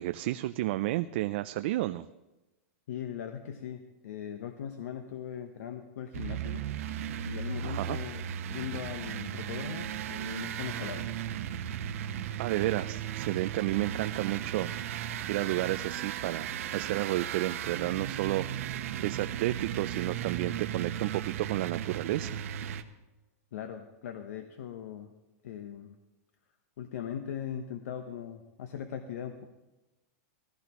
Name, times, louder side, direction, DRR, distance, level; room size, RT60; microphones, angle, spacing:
voice 1, 0.0-2.1 7.6-8.0 12.4-22.4, right 16 dB, 45° right, 11 dB, 0.3 m, -32 dB
voice 2, 2.9-6.7 7.2-11.1 23.5-25.1 25.4-25.9 26.8-29.5, left 9 dB, 70° left, 7 dB, 1.0 m, -40 dB
sound 1, 6.1-22.8, right 9 dB, 60° right, 0.9 m, -36 dB
18.0 x 15.0 x 3.0 m, 1.1 s
supercardioid pair, 170°, 8 cm